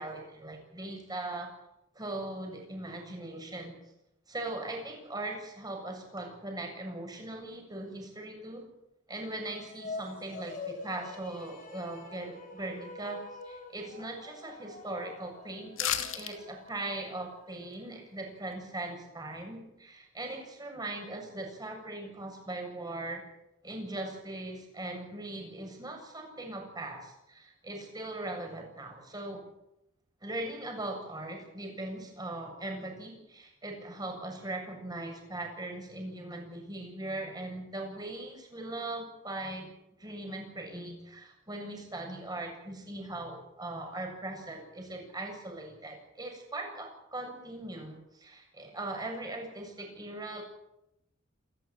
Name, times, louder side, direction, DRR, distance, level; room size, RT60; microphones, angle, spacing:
voice 1, 0.0-1.6 1.9-3.7 4.3-8.7 9.1-23.2 23.6-29.5 30.2-39.7 40.0-50.4, right 2 dB, 20° right, 2 dB, 7.4 m, -40 dB
sound 1, 9.3-17.8, left 3 dB, 40° left, 5.0 m, -46 dB
sound 2, 15.8-16.3 16.7-16.8, left 10 dB, 65° left, 2.6 m, -31 dB
28.5 x 13.0 x 9.0 m, 0.85 s
head